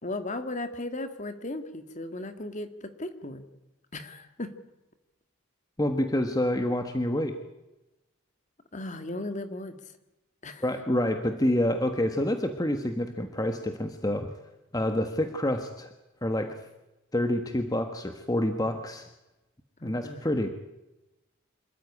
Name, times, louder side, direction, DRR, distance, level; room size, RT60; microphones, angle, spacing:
voice 1, 0.0-3.5 3.9-4.5 8.7-9.7 10.4-10.6 19.8-20.2, left 2 dB, 35° left, 9 dB, 1.9 m, -36 dB
voice 2, 5.8-7.4 10.6-14.3 14.7-15.9 16.2-16.6 17.1-19.1 19.8-20.5, left 1 dB, 15° left, 6 dB, 1.4 m, -27 dB
26.5 x 14.0 x 9.9 m, 0.99 s
head